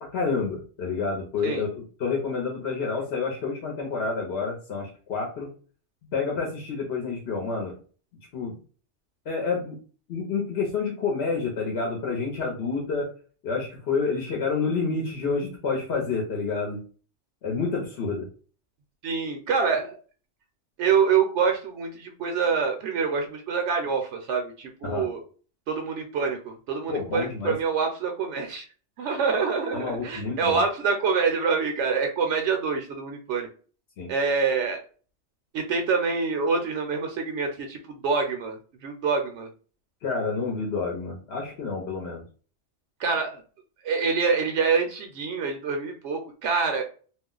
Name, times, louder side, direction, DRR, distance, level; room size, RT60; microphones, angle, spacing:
voice 1, 0.0-5.5 6.1-7.7 8.3-8.5 9.3-9.8 10.1-13.1 13.4-16.8 17.4-18.3 24.8-25.1 26.9-27.5 29.7-30.6 34.0-34.1 40.0-42.2, left 4 dB, 65° left, -1 dB, 0.9 m, -29 dB
voice 2, 19.0-20.0 20.8-25.2 25.7-28.7 29.0-33.5 34.1-34.8 35.5-38.6 38.8-39.5 43.0-43.4 43.8-46.8, right 5 dB, 75° right, 3 dB, 0.8 m, -26 dB
2.4 x 2.1 x 3.6 m, 0.39 s
omnidirectional pair, 1.2 m